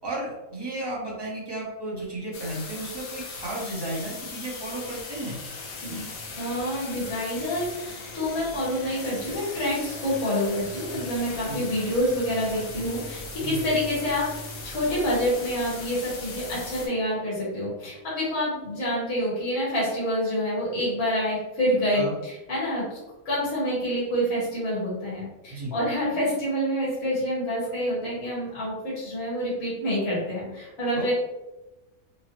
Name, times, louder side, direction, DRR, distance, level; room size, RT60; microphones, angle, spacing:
voice 1, 0.0-5.4 11.5-11.6 13.4-13.6 21.9-22.2 25.5-25.7 30.9-31.1, right 2 dB, 25° right, -4 dB, 0.7 m, -33 dB
sound 1, 2.3-16.9, left 3 dB, 75° left, 1.1 m, -38 dB
voice 2, 6.4-23.0 23.2-31.1, equal, 50° left, -7 dB, 1.4 m, -27 dB
3.8 x 2.0 x 2.9 m, 1.0 s
omnidirectional pair, 1.5 m